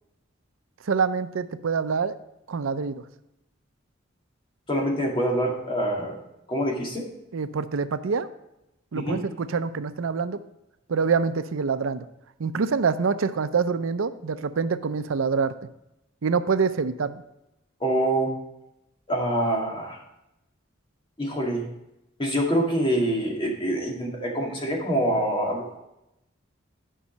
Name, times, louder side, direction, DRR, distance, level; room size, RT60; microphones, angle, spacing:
voice 1, 0.8-2.2 2.5-3.0 7.3-8.3 8.9-10.4 10.9-12.1 12.4-15.5 16.2-17.2, right 5 dB, 85° right, 12 dB, 0.5 m, -25 dB
voice 2, 4.7-6.2 6.5-7.0 8.9-9.2 17.8-18.3 19.1-20.0 21.2-21.6 22.2-25.8, right 1 dB, 25° left, -1 dB, 2.1 m, -25 dB
10.0 x 5.5 x 5.1 m, 0.89 s
head